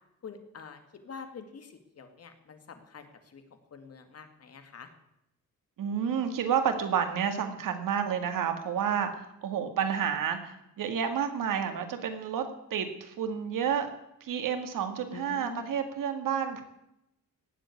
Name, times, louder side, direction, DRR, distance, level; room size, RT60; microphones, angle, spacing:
voice 1, 0.2-3.1 3.3-3.4 3.7-4.9 15.1-15.7, left 5 dB, 50° left, 7 dB, 2.1 m, -46 dB
voice 2, 5.8-13.9 14.2-16.6, right 8 dB, 80° right, 7 dB, 2.1 m, -30 dB
17.5 x 7.7 x 8.6 m, 0.84 s
wide cardioid pair, 145°, 32 cm